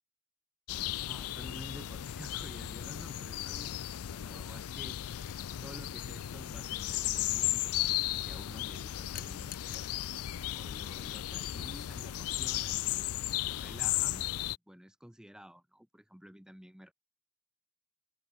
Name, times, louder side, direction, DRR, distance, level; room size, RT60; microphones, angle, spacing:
sound 1, 0.7-14.6, left 13 dB, 90° left, 0.4 m, -35 dB
voice 1, 1.1-5.0 5.6-9.9 10.5-13.1 13.4-14.3 14.7-16.9, equal, 5° right, 0.7 m, -51 dB
sound 2, 5.1-5.4 9.1-10.0 11.4-11.6, left 12 dB, 40° left, 1.4 m, -48 dB
head